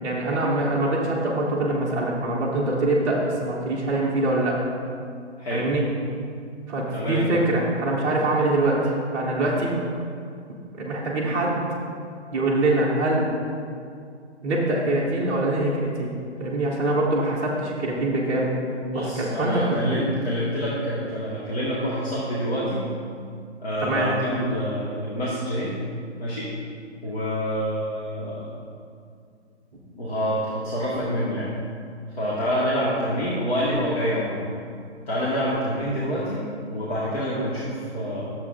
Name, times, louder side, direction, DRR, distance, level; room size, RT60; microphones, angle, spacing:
voice 1, 0.0-4.6 5.5-5.8 6.7-9.7 10.8-11.6 12.3-13.3 14.4-16.1 16.4-18.5 18.9-20.0 23.8-24.1, right 2 dB, 5° right, -7 dB, 0.6 m, -24 dB
voice 2, 6.9-7.2 18.9-22.9 23.6-25.7 26.2-26.5 27.0-28.6 29.9-31.5 32.2-34.5 35.1-36.4 36.7-38.3, equal, 60° left, -8 dB, 1.8 m, -27 dB
11.0 x 7.3 x 2.6 m, 2.3 s
figure-of-eight pair, 140°, 35 cm